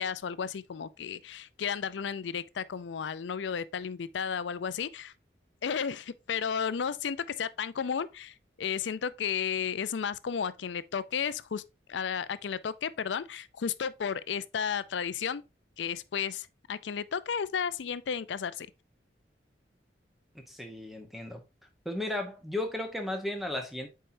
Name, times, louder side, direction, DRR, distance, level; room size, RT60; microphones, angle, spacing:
voice 1, 0.0-5.1 5.6-11.6 11.9-15.4 15.8-18.7, left 7 dB, 80° left, 0.4 m, -33 dB
voice 2, 20.3-21.4 21.8-23.9, left 1 dB, ahead, 0.9 m, -35 dB
7.7 x 4.5 x 2.7 m
head